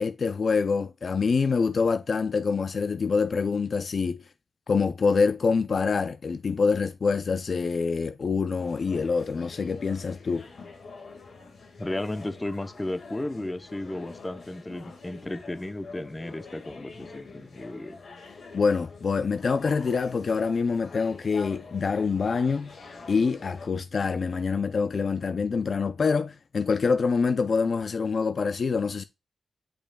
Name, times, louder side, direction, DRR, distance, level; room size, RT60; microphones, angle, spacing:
voice 1, 0.0-4.2 4.7-10.5 18.5-22.7 23.1-29.0, left 5 dB, 55° left, 0.4 m, -25 dB
sound 1, 8.6-23.7, left 4 dB, 70° left, 1.7 m, -46 dB
voice 2, 11.8-18.0, left 1 dB, 15° left, 0.7 m, -34 dB
8.8 x 5.2 x 2.2 m
wide cardioid pair, 110°, 0 cm